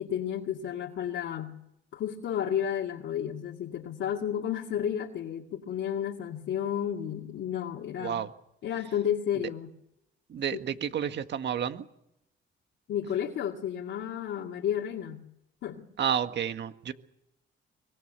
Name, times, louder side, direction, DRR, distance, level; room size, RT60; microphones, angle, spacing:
voice 1, 0.0-1.6 1.9-8.2 8.6-9.7 10.5-10.6 12.9-15.3 15.6-15.9, left 9 dB, 75° left, -1 dB, 2.3 m, -32 dB
voice 2, 10.3-11.9 16.0-16.9, right 8 dB, 60° right, 9 dB, 1.8 m, -30 dB
24.0 x 22.5 x 6.9 m, 0.82 s
cardioid pair, 90°, 20 cm